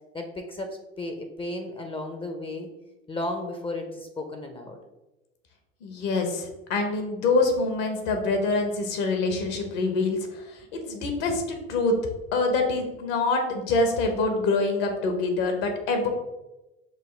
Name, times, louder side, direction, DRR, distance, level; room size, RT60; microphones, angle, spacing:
voice 1, 0.1-2.7 3.1-4.8, left 2 dB, 15° left, 5 dB, 0.5 m, -34 dB
voice 2, 5.8-11.9 12.3-16.1, left 3 dB, 70° left, 4 dB, 1.0 m, -25 dB
6.1 x 2.2 x 3.2 m, 1.0 s
hypercardioid pair, 85°, 31 cm